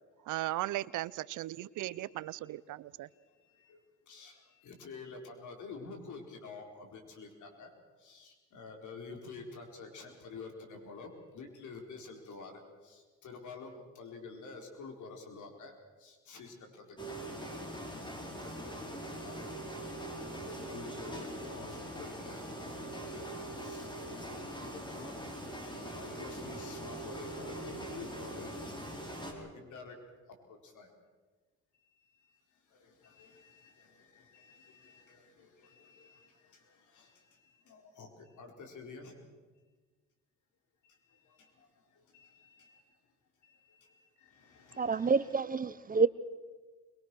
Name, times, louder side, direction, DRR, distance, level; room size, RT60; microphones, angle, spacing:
voice 1, 0.3-3.1, right 16 dB, 85° right, 20 dB, 0.7 m, -37 dB
voice 2, 1.8-2.4 3.7-3.8 4.1-7.7 8.0-12.5 12.8-15.7 16.0-17.2 17.7-18.1 18.4-19.5 20.3-22.4 22.9-23.2 23.6-23.9 24.6-25.1 26.0-28.5 29.2-29.9 30.7-30.9 33.0-36.3 36.9-37.1 37.7-38.1 38.4-39.1 41.4-41.5 42.1-42.8 43.4-43.9 44.3-45.4, left 4 dB, 75° left, 3 dB, 4.8 m, -49 dB
sound 1, 17.0-29.3, right 1 dB, 15° left, 4.9 m, -42 dB
voice 3, 44.8-46.1, right 4 dB, 30° right, 15 dB, 0.9 m, -28 dB
23.0 x 22.5 x 6.3 m, 1.3 s
cardioid pair, 90°, 30 cm